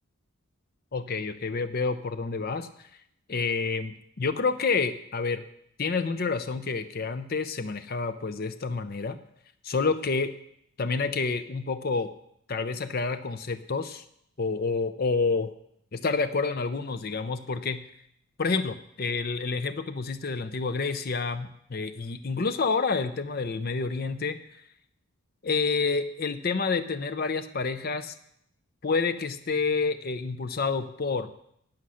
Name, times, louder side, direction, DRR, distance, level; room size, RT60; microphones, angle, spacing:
voice 1, 0.9-2.9 3.3-5.4 5.8-9.2 9.6-10.3 10.8-12.1 12.5-14.0 14.4-15.5 15.9-17.8 18.4-24.4 25.4-28.1 28.8-31.3, left 4 dB, 45° left, 11 dB, 0.6 m, -28 dB
11.5 x 8.9 x 6.3 m, 0.72 s
head